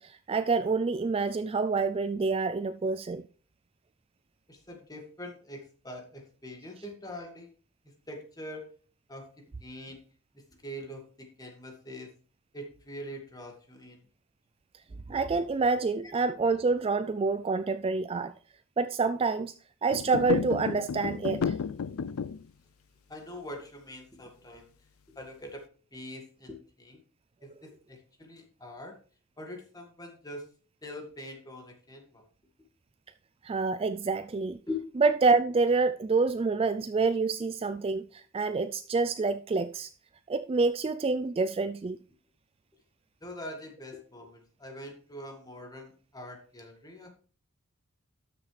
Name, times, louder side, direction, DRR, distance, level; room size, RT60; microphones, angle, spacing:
voice 1, 0.0-3.2 15.1-18.3 18.8-19.5 19.8-21.6 33.4-34.6 35.0-39.9 40.3-42.0, right 4 dB, 25° right, 0.3 m, -27 dB
voice 2, 4.5-7.5 8.1-8.7 9.1-9.3 9.6-10.0 10.6-12.1 12.5-14.0 23.1-24.7 25.2-25.6 25.9-27.0 27.4-29.0 29.4-30.4 30.8-32.2 34.7-34.8 43.2-47.1, left 1 dB, 15° left, 2.0 m, -43 dB
sound 1, 19.9-22.5, left 6 dB, 75° left, 0.4 m, -32 dB
13.0 x 6.8 x 3.3 m
head